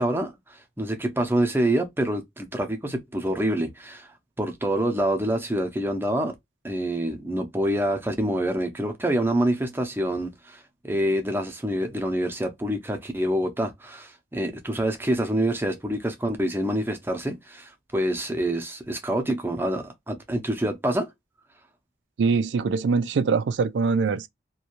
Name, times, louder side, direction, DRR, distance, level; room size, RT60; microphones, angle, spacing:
voice 1, 0.0-4.1 4.4-6.3 6.6-21.1, right 1 dB, 10° right, 0.5 m, -26 dB
voice 2, 22.2-24.3, right 5 dB, 80° right, 0.4 m, -23 dB
2.5 x 2.3 x 2.8 m
head